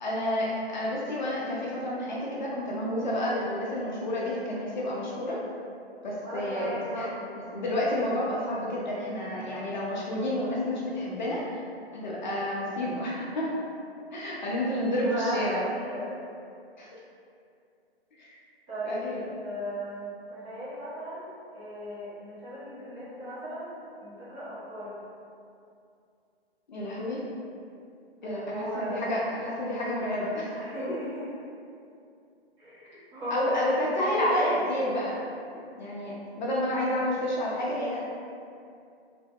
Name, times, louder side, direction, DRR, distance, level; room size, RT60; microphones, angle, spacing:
voice 1, 0.0-5.4 6.0-7.1 7.5-11.4 11.9-13.6 14.1-15.6 16.8-16.9 18.2-18.4 18.8-19.2 26.7-27.2 28.2-30.9 33.3-35.2 35.8-38.0, left 1 dB, 45° left, -5 dB, 0.5 m, -30 dB
voice 2, 6.2-7.4 15.0-16.1 18.7-24.9 28.2-29.2 30.5-31.3 32.6-34.6, equal, 20° right, -11 dB, 0.8 m, -36 dB
2.6 x 2.5 x 2.2 m, 2.5 s
figure-of-eight pair, 130°, 32 cm